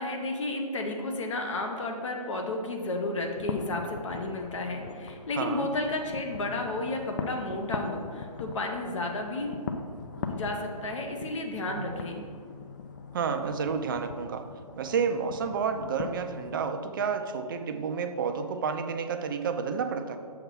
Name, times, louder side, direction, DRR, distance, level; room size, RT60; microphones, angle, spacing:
voice 1, 0.0-9.6 10.3-12.3, left 2 dB, 50° left, 3 dB, 0.8 m, -32 dB
sound 1, 3.2-16.7, left 5 dB, 30° left, 0.4 m, -40 dB
voice 2, 5.4-5.7 11.7-12.0 13.1-14.5 14.8-20.2, right 6 dB, 35° right, 8 dB, 0.4 m, -30 dB
7.0 x 3.4 x 5.7 m, 2.1 s
figure-of-eight pair, 145°, 20 cm